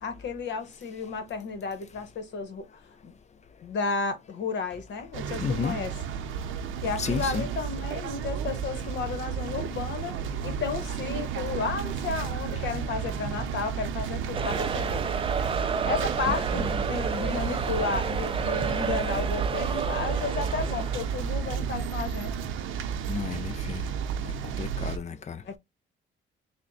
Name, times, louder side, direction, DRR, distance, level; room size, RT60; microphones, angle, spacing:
voice 1, 0.0-2.7 3.0-3.1 3.6-5.9 6.8-15.0 15.8-22.4 25.5-25.6, left 5 dB, 65° left, 1.1 m, -33 dB
sound 1, 5.1-25.0, right 7 dB, 85° right, 0.6 m, -32 dB
voice 2, 5.4-5.7 7.0-7.5 16.5-16.6 23.1-23.8 24.6-25.4, left 6 dB, 35° left, 0.5 m, -32 dB
sound 2, 14.3-21.2, right 6 dB, 25° right, 0.4 m, -31 dB
sound 3, 14.4-21.4, left 1 dB, ahead, 1.8 m, -45 dB
3.6 x 2.2 x 3.9 m
cardioid pair, 90°, 20 cm